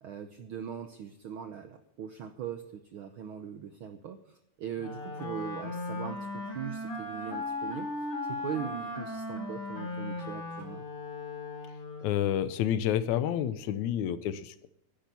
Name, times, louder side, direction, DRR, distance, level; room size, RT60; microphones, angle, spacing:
voice 1, 0.0-7.9 8.3-10.8, right 8 dB, 75° right, 8 dB, 1.2 m, -40 dB
Wind instrument woodwind instrument, 4.8-12.3, left 2 dB, 50° left, 3.8 m, -37 dB
voice 2, 12.0-14.7, left 10 dB, 80° left, 14 dB, 2.1 m, -29 dB
11.5 x 10.5 x 6.9 m, 0.76 s
omnidirectional pair, 3.4 m